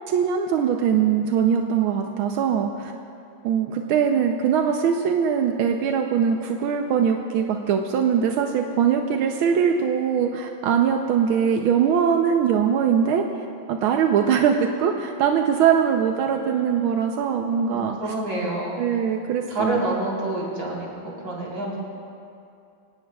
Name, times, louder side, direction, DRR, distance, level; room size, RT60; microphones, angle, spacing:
voice 1, 0.1-2.9 3.4-13.2 13.7-18.0 18.7-19.9, right 7 dB, 90° right, 3 dB, 1.6 m, -22 dB
voice 2, 16.3-17.2 17.6-18.8 19.5-21.8, right 1 dB, 50° right, -5 dB, 4.4 m, -29 dB
24.0 x 18.5 x 2.4 m, 2.5 s
omnidirectional pair, 2.2 m